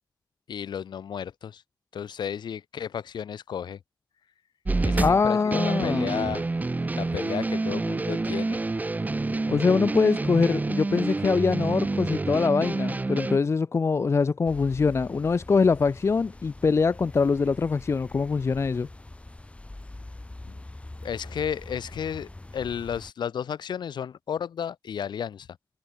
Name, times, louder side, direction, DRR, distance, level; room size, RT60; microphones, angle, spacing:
voice 1, 0.5-1.6 1.9-3.8 4.8-6.4 7.0-8.6 21.0-25.5, left 8 dB, 75° left, 1.9 m, -33 dB
sound 1, 4.6-13.4, right 3 dB, 20° right, 0.6 m, -28 dB
voice 2, 5.0-6.1 9.5-18.9, left 4 dB, 35° left, 0.5 m, -23 dB
sound 2, 14.4-23.1, left 2 dB, 15° left, 1.8 m, -44 dB
cardioid pair, 80°, 8 cm